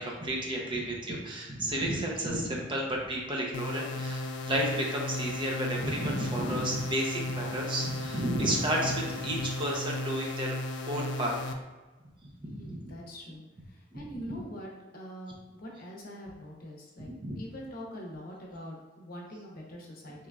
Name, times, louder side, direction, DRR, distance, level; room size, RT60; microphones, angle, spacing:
voice 1, 0.0-10.5 10.9-11.3 12.2-12.8 13.9-14.0 17.2-17.4, right 1 dB, 25° right, -2 dB, 0.6 m, -32 dB
sound 1, 3.5-11.5, left 2 dB, 75° left, 0.3 m, -35 dB
voice 2, 12.5-17.1 17.4-20.3, equal, 55° left, -2 dB, 0.7 m, -44 dB
3.7 x 3.0 x 2.3 m, 1.2 s
head